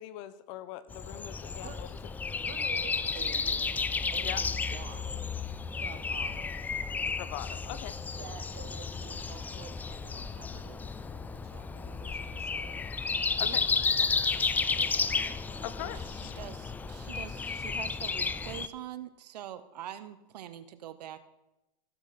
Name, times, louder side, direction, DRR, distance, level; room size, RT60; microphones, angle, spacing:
voice 1, 0.0-1.9 4.2-4.4 7.2-8.0 13.4-13.7 15.6-16.3, left 13 dB, 50° left, 15 dB, 0.8 m, -41 dB
Breathing, 0.9-18.7, left 5 dB, 10° left, 0.3 m, -32 dB
voice 2, 2.5-3.7 4.1-5.3 5.7-6.6 8.2-12.8 13.4-13.6 14.0-16.0, right 11 dB, 45° right, 8 dB, 1.3 m, -50 dB
voice 3, 15.8-21.2, right 11 dB, 70° right, 12 dB, 0.9 m, -44 dB
15.5 x 7.3 x 4.2 m, 0.98 s
hypercardioid pair, 115°, 21 cm